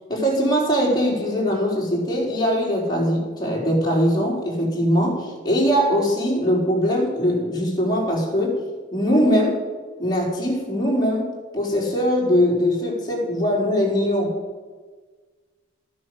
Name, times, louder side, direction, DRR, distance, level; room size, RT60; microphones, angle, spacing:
voice 1, 0.1-8.6 8.9-9.6 10.0-14.4, equal, 20° left, -2 dB, 4.3 m, -21 dB
13.5 x 10.5 x 7.9 m, 1.4 s
head